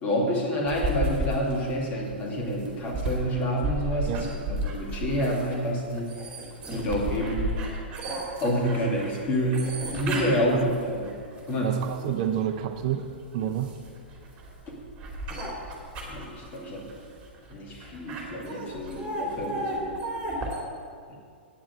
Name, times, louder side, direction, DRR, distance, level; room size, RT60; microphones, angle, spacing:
voice 1, 0.0-6.2 6.7-7.5 8.4-11.2 11.5-11.8 14.7-14.8 16.1-16.9 17.5-19.9 21.1-21.2, equal, 25° left, -2 dB, 2.4 m, -28 dB
sound 1, 0.7-12.4 12.9-20.6, right 1 dB, 20° right, 2.7 m, -33 dB
voice 2, 11.6-13.1 13.3-13.8, right 10 dB, 40° right, 7 dB, 0.7 m, -29 dB
9.3 x 7.3 x 8.3 m, 2.2 s
figure-of-eight pair, 110°, 6 cm